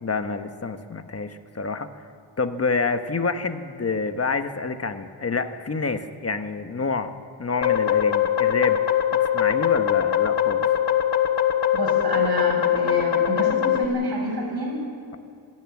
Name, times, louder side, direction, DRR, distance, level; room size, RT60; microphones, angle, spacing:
voice 1, 0.0-1.9 2.4-7.1 7.4-8.8 9.2-10.7, left 4 dB, 30° left, 8 dB, 1.2 m, -27 dB
sound 1, 7.6-13.8, left 10 dB, 55° left, 1.4 m, -21 dB
voice 2, 11.7-14.8, right 1 dB, 50° right, -2 dB, 7.3 m, -28 dB
27.0 x 11.0 x 9.6 m, 2.5 s
wide cardioid pair, 135°, 48 cm